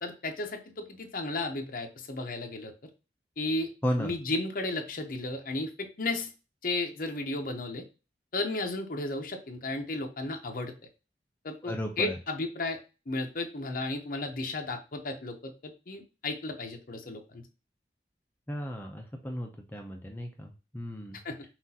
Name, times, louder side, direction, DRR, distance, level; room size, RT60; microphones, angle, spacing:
voice 1, 0.0-2.7 3.4-3.7 4.0-6.3 6.6-7.8 8.3-10.7 11.4-12.8 13.1-15.5 15.9-17.4 21.2-21.4, left 2 dB, 50° left, 4 dB, 0.8 m, -34 dB
voice 2, 3.8-4.1 11.6-12.2 18.5-21.2, equal, 10° left, 2 dB, 0.5 m, -34 dB
5.9 x 2.5 x 2.7 m, 0.31 s
head